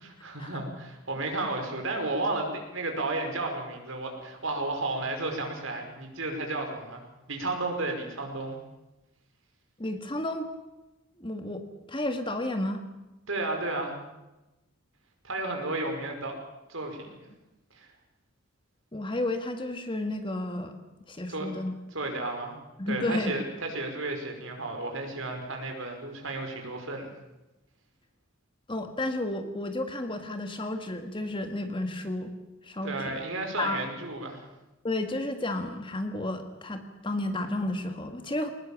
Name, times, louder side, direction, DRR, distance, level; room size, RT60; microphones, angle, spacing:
voice 1, 0.2-7.0 7.3-8.6 13.3-14.0 15.2-16.4 16.7-17.2 17.7-17.9 21.3-21.5 21.9-22.6 22.9-27.1 32.8-34.5, right 2 dB, 75° right, 3 dB, 5.3 m, -33 dB
voice 2, 9.8-10.5 11.2-12.8 18.9-20.7 21.1-21.7 22.8-23.3 28.7-32.3 32.6-33.2 33.6-33.8 34.8-38.5, left 1 dB, 25° left, 6 dB, 1.8 m, -32 dB
22.0 x 20.0 x 7.4 m, 1.0 s
head